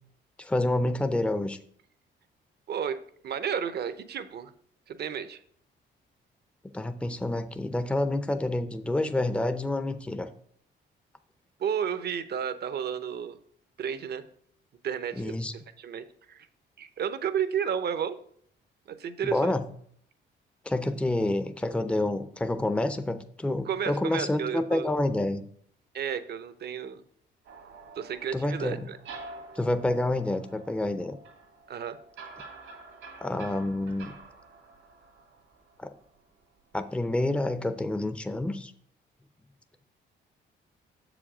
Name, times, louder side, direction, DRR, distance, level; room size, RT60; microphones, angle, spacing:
voice 1, 0.4-1.6 6.7-10.3 15.1-15.5 19.2-19.7 20.7-25.4 28.3-28.9 29.6-31.2 33.2-34.1 35.8-36.0 36.7-38.7, left 1 dB, 5° left, 9 dB, 0.5 m, -28 dB
voice 2, 2.7-4.5 4.9-5.4 11.6-13.4 13.8-14.2 14.8-15.3 15.8-16.5 16.8-18.2 18.9-19.5 23.7-24.9 25.9-27.0 28.0-29.0 31.7-32.0, right 8 dB, 55° right, 12 dB, 0.7 m, -32 dB
sound 1, 27.4-36.3, right 3 dB, 80° right, 1.7 m, -48 dB
6.9 x 5.0 x 4.9 m, 0.62 s
cardioid pair, 90°, 20 cm